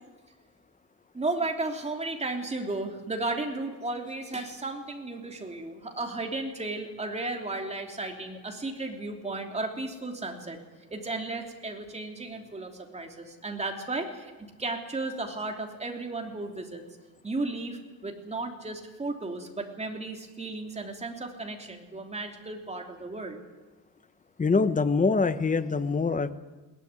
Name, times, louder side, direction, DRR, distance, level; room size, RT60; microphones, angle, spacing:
voice 1, 1.1-10.6 10.9-14.3 14.6-16.8 17.2-23.4, right 2 dB, 20° right, 3 dB, 3.1 m, -34 dB
voice 2, 24.4-26.3, left 4 dB, 20° left, 12 dB, 1.1 m, -24 dB
21.5 x 18.0 x 9.7 m, 1.2 s
cardioid pair, 145°, 34 cm